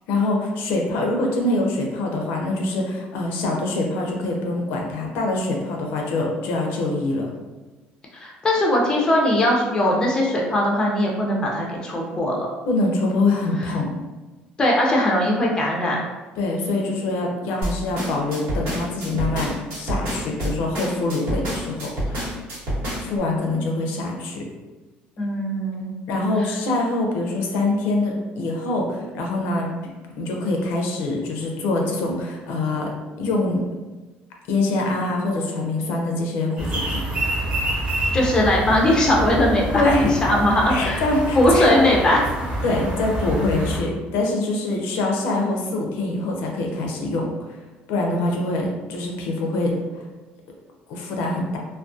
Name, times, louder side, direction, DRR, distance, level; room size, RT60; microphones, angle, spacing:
voice 1, 0.1-7.3 12.7-13.9 16.4-22.2 23.0-24.5 26.1-29.7 30.2-32.9 33.2-33.6 34.5-37.0 39.7-40.1 40.7-41.8 42.6-47.3 47.9-50.0 50.9-51.6, left 2 dB, 80° left, 0 dB, 0.5 m, -24 dB
voice 2, 8.1-12.5 14.6-16.0 25.2-25.9 38.1-41.0 41.3-42.2, left 1 dB, 20° left, -2 dB, 0.5 m, -20 dB
sound 1, 17.6-23.2, equal, 85° right, 1.1 m, -27 dB
sound 2, 36.6-43.8, right 1 dB, 30° right, 0.9 m, -27 dB
2.3 x 2.2 x 2.5 m, 1.2 s
cardioid pair, 135°, 4 cm